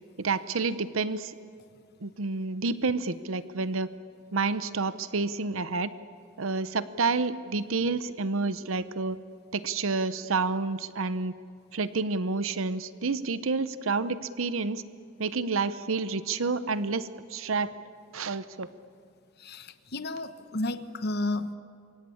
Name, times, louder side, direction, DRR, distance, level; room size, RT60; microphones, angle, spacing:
voice 1, 0.2-1.4 2.0-3.9 4.3-5.9 6.4-9.2 9.5-11.3 11.7-14.8 15.2-17.7 18.1-18.7, right 4 dB, 70° right, 14 dB, 0.8 m, -29 dB
voice 2, 19.4-21.5, left 2 dB, 50° left, 11 dB, 1.1 m, -32 dB
27.0 x 23.5 x 8.6 m, 2.3 s
head